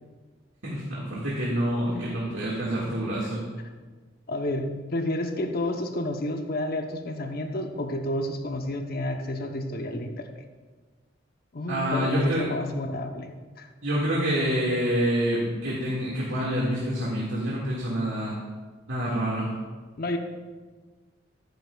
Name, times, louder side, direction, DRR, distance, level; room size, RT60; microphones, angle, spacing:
voice 1, 0.6-3.4 11.7-12.5 13.8-18.3 18.9-19.5, equal, 85° right, -6 dB, 2.0 m, -27 dB
voice 2, 4.3-10.4 11.5-13.7 20.0-20.2, left 1 dB, 50° left, 5 dB, 0.8 m, -30 dB
13.5 x 10.5 x 2.4 m, 1.4 s
head